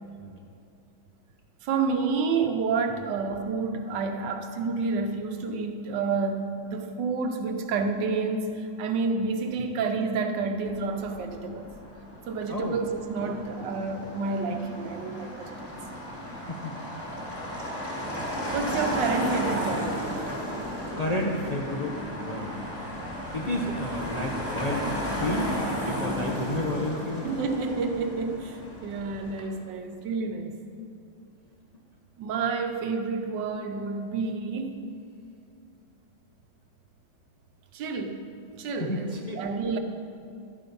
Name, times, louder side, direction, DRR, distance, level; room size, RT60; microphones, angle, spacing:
voice 1, 1.6-11.7 12.3-15.7 18.5-20.0 27.2-30.5 32.2-34.9 37.7-38.2 38.6-39.8, right 4 dB, 70° right, 6 dB, 1.5 m, -29 dB
Motor vehicle (road), 10.6-29.4, equal, 30° left, 3.7 m, -34 dB
voice 2, 21.0-22.5 23.3-25.6 25.8-27.3 38.8-39.4, left 1 dB, 80° left, -1 dB, 0.3 m, -31 dB
12.5 x 8.7 x 5.4 m, 2.5 s
omnidirectional pair, 2.1 m